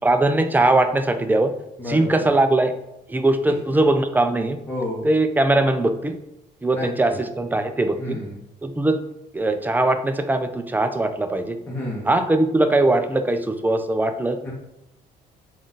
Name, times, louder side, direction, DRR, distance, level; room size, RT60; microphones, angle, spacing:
voice 1, 0.0-1.5 1.9-2.7 3.1-4.6 5.0-6.1 6.6-8.2 8.6-9.0 9.3-11.6 12.1-14.4, right 2 dB, 10° right, 8 dB, 0.3 m, -20 dB
voice 2, 1.8-2.2 3.5-3.6 4.7-5.1 6.7-7.2 8.0-8.4 11.7-12.1 14.4-14.5, left 1 dB, 10° left, -5 dB, 0.9 m, -30 dB
3.8 x 2.4 x 3.8 m, 0.88 s
cardioid pair, 110°, 17 cm